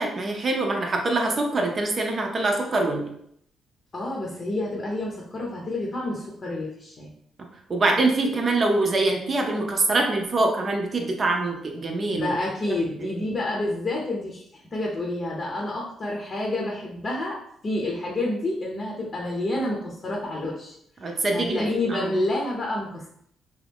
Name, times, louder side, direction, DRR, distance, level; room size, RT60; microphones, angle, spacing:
voice 1, 0.0-3.1 7.7-12.3 21.0-22.2, right 2 dB, 40° right, 2 dB, 0.6 m, -24 dB
voice 2, 3.9-7.1 12.1-20.7 21.1-23.1, left 1 dB, 35° left, -2 dB, 0.7 m, -29 dB
2.9 x 2.4 x 3.5 m, 0.71 s
cardioid pair, 90°, 0 cm